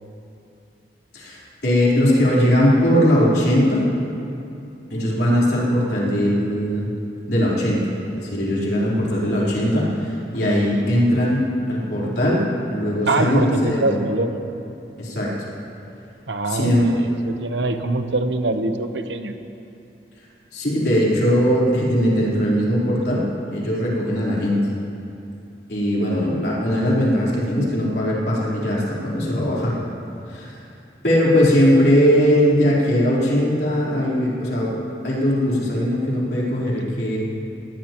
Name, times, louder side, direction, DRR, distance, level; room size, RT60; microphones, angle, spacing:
voice 1, 1.1-3.9 4.9-6.9 7.3-7.8 8.1-12.4 12.7-14.0 15.0-15.3 16.5-16.9 20.5-23.2 23.5-24.6 25.7-29.7 30.3-30.6 31.0-34.7 35.0-37.2, equal, 65° left, -7 dB, 4.1 m, -19 dB
voice 2, 13.1-14.4 16.3-19.3, right 2 dB, 85° right, 7 dB, 1.0 m, -24 dB
20.0 x 18.0 x 3.1 m, 2.7 s
head